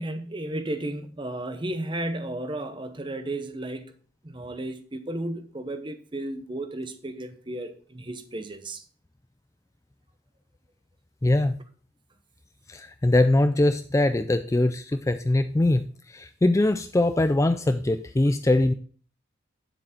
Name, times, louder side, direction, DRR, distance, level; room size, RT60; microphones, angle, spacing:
voice 1, 0.0-3.9 4.2-8.8, right 1 dB, 25° right, 0.8 m, -33 dB
voice 2, 11.2-11.6 12.7-18.7, left 2 dB, 15° left, 0.3 m, -22 dB
9.2 x 7.5 x 4.3 m
head